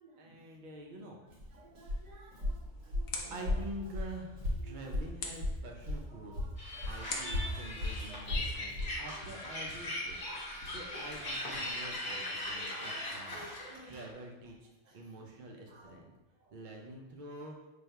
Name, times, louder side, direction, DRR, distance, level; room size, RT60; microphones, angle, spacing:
voice 1, 0.2-1.2 2.8-3.0 3.3-6.3 6.8-10.2 10.5-13.4 13.9-14.7 14.9-16.1 16.5-17.6, right 1 dB, 90° right, 0 dB, 0.4 m, -47 dB
Walk footsteps, 1.3-6.1 6.3-9.0, left 1 dB, 70° right, 1.3 m, -36 dB
voice 2, 1.6-2.5 2.8-3.3 4.7-4.8 6.2-6.3 6.8-7.6 8.1-8.2 9.5-9.6 10.2-10.5 10.9-11.3 11.6-11.7 12.1-12.2 12.5-13.9 15.7-15.9, right 2 dB, 40° right, -3 dB, 0.8 m, -51 dB
sound 1, 2.0-12.0, left 3 dB, 70° left, 1.0 m, -48 dB
sound 2, 6.6-14.0, left 1 dB, 45° left, 0.9 m, -40 dB
3.3 x 2.3 x 4.3 m, 1.1 s
omnidirectional pair, 1.4 m